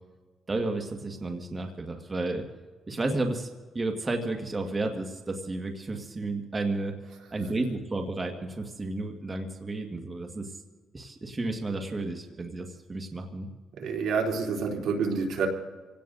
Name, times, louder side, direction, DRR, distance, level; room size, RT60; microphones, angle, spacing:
voice 1, 0.5-2.4 2.9-3.5 3.7-6.9 7.3-10.5 10.9-13.5, right 2 dB, 25° right, 3 dB, 1.6 m, -32 dB
voice 2, 13.8-15.5, right 5 dB, 75° right, 1 dB, 3.2 m, -28 dB
28.0 x 17.5 x 2.6 m, 1.4 s
cardioid pair, 90°, 0 cm